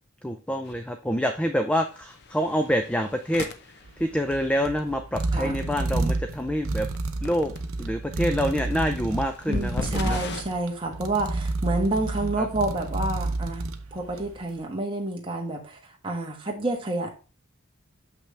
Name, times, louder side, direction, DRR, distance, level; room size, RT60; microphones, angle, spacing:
voice 1, 0.2-3.5 4.0-6.9 7.2-7.5 7.8-10.2 12.4-12.5, equal, 5° left, 6 dB, 0.4 m, -26 dB
sound 1, 0.7-0.8 1.1-1.4 1.9-4.7 6.9-7.0 7.3-7.6 8.5-10.4, left 3 dB, 50° left, 0.7 m, -36 dB
sound 2, 3.9-14.4, right 2 dB, 70° right, 0.8 m, -30 dB
voice 2, 9.5-17.1, right 2 dB, 25° right, 1 dB, 1.3 m, -29 dB
6.7 x 5.8 x 3.3 m, 0.35 s
head